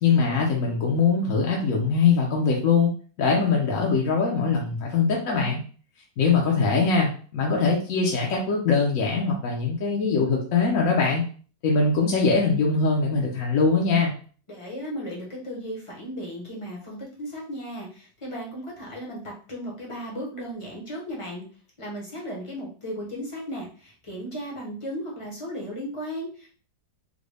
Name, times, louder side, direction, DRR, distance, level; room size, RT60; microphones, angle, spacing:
voice 1, 0.0-2.9 3.2-5.6 6.2-11.2 11.6-14.1, left 4 dB, 60° left, -2 dB, 0.9 m, -22 dB
voice 2, 14.5-21.4 21.8-26.5, equal, 30° left, -3 dB, 0.6 m, -35 dB
3.8 x 2.2 x 3.3 m, 0.41 s
omnidirectional pair, 2.0 m